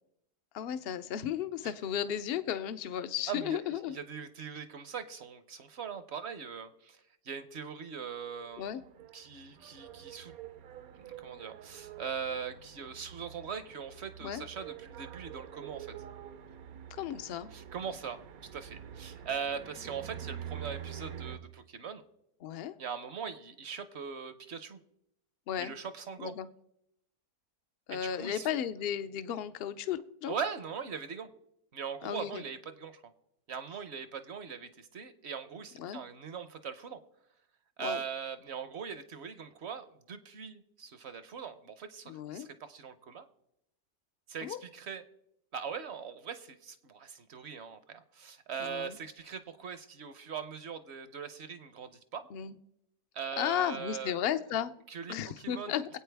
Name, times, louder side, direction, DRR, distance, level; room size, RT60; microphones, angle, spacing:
voice 1, 0.5-4.0 8.6-8.8 14.2-14.4 16.9-17.5 22.4-22.8 25.5-25.7 26.2-26.5 27.9-30.4 32.0-32.4 35.8-36.0 37.8-38.0 42.1-42.5 44.4-44.6 48.6-49.0 52.3-52.6 53.4-54.7 55.1-56.0, left 10 dB, 65° left, 13 dB, 0.6 m, -34 dB
voice 2, 3.3-3.6 3.9-7.0 7.2-8.7 9.1-10.3 10.9-15.9 17.5-18.2 18.5-22.0 22.8-24.8 25.6-26.3 27.9-28.5 30.3-31.3 31.7-33.0 33.5-37.0 37.8-43.3 44.3-45.0 45.5-52.2 53.1-54.2 54.9-55.8, right 6 dB, 55° right, 11 dB, 0.9 m, -41 dB
sound 1, 8.2-21.4, right 9 dB, 70° right, 1.2 m, -47 dB
24.0 x 8.6 x 3.4 m, 0.80 s
omnidirectional pair, 1.6 m